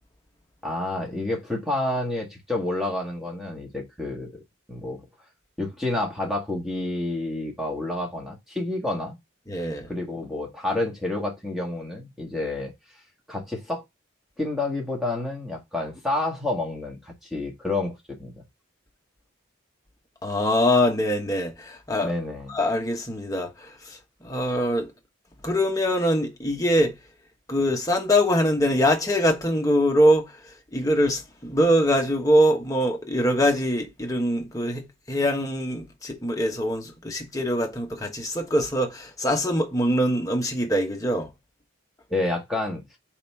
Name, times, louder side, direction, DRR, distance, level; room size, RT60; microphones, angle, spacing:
voice 1, 0.6-4.4 4.7-5.0 5.6-9.2 9.9-12.7 13.3-13.8 14.4-18.4 22.0-22.6 42.1-42.8, left 2 dB, ahead, 1.6 m, -29 dB
voice 2, 9.5-9.9 20.2-22.1 22.5-24.0 24.2-24.9 25.4-26.9 27.5-30.3 30.7-41.3, equal, 15° left, 1.2 m, -23 dB
4.4 x 4.1 x 5.4 m
head